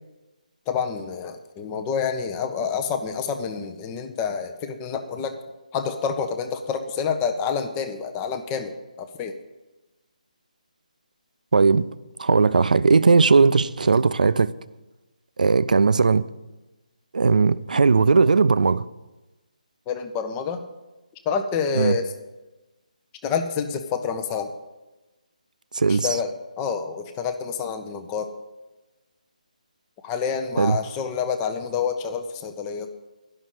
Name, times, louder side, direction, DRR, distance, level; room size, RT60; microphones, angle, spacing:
voice 1, 0.7-5.4 5.7-9.4 19.9-20.6 21.3-22.1 23.2-24.5 25.9-28.3 30.0-32.9, left 6 dB, 15° left, 0.7 m, -28 dB
voice 2, 11.5-11.9 12.2-14.5 15.4-16.2 17.1-18.8 21.8-22.0 25.7-26.1 30.6-30.8, right 4 dB, 70° right, 0.5 m, -18 dB
11.0 x 6.1 x 7.7 m
figure-of-eight pair, 155°, 4 cm